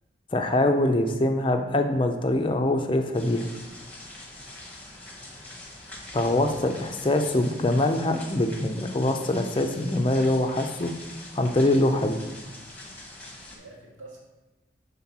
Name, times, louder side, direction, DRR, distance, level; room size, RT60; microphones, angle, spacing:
voice 1, 0.3-3.5 6.1-10.9 11.3-12.2, left 1 dB, 25° left, 5 dB, 0.4 m, -24 dB
sound 1, 3.1-13.6, left 1 dB, 10° left, 1.0 m, -44 dB
voice 2, 4.9-5.6 6.4-6.7 13.5-14.2, right 2 dB, 85° right, -2 dB, 1.7 m, -49 dB
5.6 x 3.7 x 5.9 m, 1.1 s
head